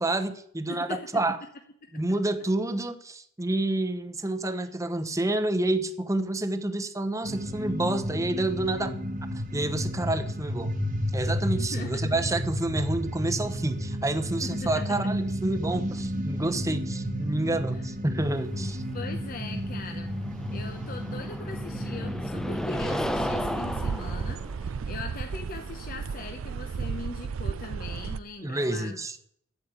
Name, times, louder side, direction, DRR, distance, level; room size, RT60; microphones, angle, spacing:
voice 1, 0.0-1.4 1.9-9.0 9.3-10.7 11.1-18.8 28.4-29.2, right 2 dB, 15° right, 0.9 m, -29 dB
voice 2, 0.7-1.0 4.5-4.7 11.6-12.1 14.4-14.8 17.7-17.8 18.9-20.1 20.5-29.0, left 3 dB, 45° left, 1.0 m, -40 dB
sound 1, 7.2-23.8, equal, 40° right, 1.2 m, -32 dB
sound 2, 18.2-27.1, equal, 5° left, 0.5 m, -35 dB
sound 3, 22.7-28.2, right 5 dB, 85° right, 0.4 m, -34 dB
10.5 x 8.7 x 8.2 m
head